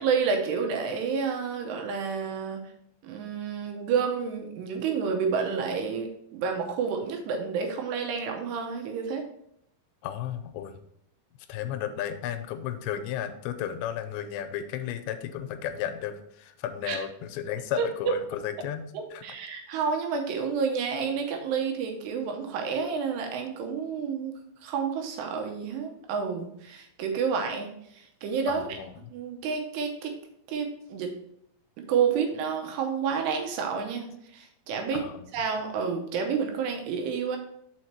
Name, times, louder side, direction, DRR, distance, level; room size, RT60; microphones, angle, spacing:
voice 1, 0.0-2.6 3.0-9.3 16.9-17.0 17.8-17.9 18.9-28.7 29.1-30.1 30.5-31.2 31.8-34.1 34.3-35.0 35.3-37.4, right 6 dB, 80° right, 4 dB, 3.0 m, -29 dB
voice 2, 10.0-10.8 11.5-18.9 19.1-19.2 28.5-29.1 34.9-35.3, left 10 dB, 90° left, 9 dB, 2.8 m, -34 dB
6.2 x 4.7 x 4.3 m, 0.71 s
omnidirectional pair, 5.0 m